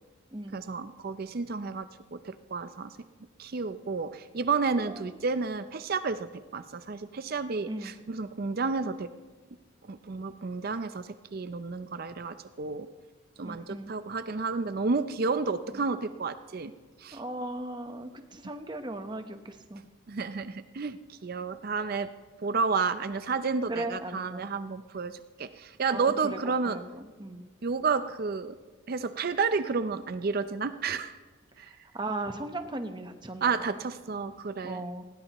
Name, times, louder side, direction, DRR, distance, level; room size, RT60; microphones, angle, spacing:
voice 1, 0.5-2.9 3.4-9.1 9.9-12.9 13.4-16.7 17.0-17.2 20.1-22.1 22.4-26.8 27.6-28.6 28.9-31.1 31.6-31.7 33.4-34.8, right 4 dB, 45° right, 11 dB, 0.5 m, -31 dB
voice 2, 4.7-5.2 7.7-7.9 13.4-13.9 15.7-15.8 17.1-19.8 23.7-24.5 25.9-26.4 26.7-27.4 31.7-33.7 34.6-35.0, right 2 dB, 20° right, 7 dB, 1.0 m, -38 dB
20.0 x 17.5 x 3.0 m, 1.4 s
head